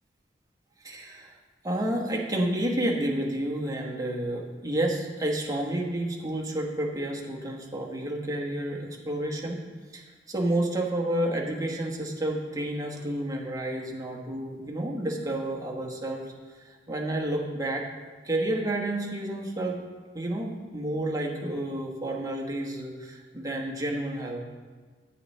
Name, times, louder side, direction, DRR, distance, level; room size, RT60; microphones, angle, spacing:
voice 1, 0.8-1.3 1.6-9.6 9.9-16.2 16.6-17.8 18.2-19.8 20.1-24.4, right 1 dB, 20° right, -1 dB, 1.2 m, -30 dB
9.0 x 9.0 x 3.3 m, 1.5 s
head